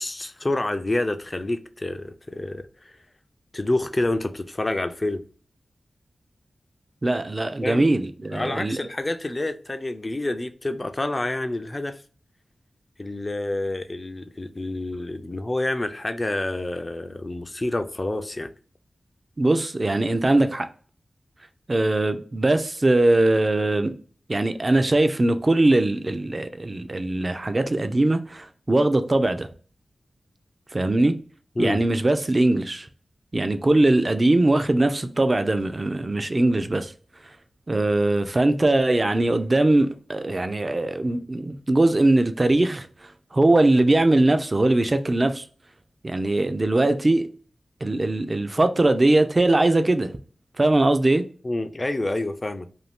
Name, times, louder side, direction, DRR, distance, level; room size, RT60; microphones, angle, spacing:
voice 1, 0.0-3.0 3.5-5.2 7.6-7.9 8.3-12.0 13.0-18.5 31.6-31.8 51.4-52.7, left 2 dB, 35° left, 0.4 m, -28 dB
voice 2, 7.0-8.8 19.4-20.7 21.7-23.9 24.3-29.5 30.7-31.1 31.6-32.9 33.3-36.9 37.7-42.9 43.3-45.4 46.0-47.3 47.8-50.1 50.6-51.2, right 2 dB, 40° right, 0.4 m, -21 dB
2.6 x 2.3 x 3.4 m
cardioid pair, 45°, 0 cm